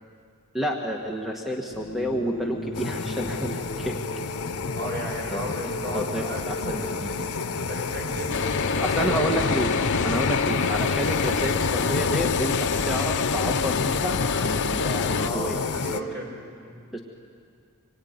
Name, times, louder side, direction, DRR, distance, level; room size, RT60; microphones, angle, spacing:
voice 1, 0.5-4.0 5.3-5.5 5.9-7.1 8.8-9.7 10.0-15.5 15.8-16.2 16.9-17.0, equal, ahead, 0 dB, 1.6 m, -30 dB
sound 1, 1.7-14.0, left 1 dB, 35° left, 3.3 m, -38 dB
sound 2, 2.7-16.0, left 5 dB, 85° left, 0.8 m, -29 dB
voice 2, 4.7-7.2 7.5-9.4 9.9-10.1 15.1-16.8, equal, 50° right, -1 dB, 6.5 m, -36 dB
sound 3, 8.3-15.3, left 4 dB, 55° left, 0.8 m, -28 dB
26.5 x 23.0 x 9.6 m, 2.2 s
head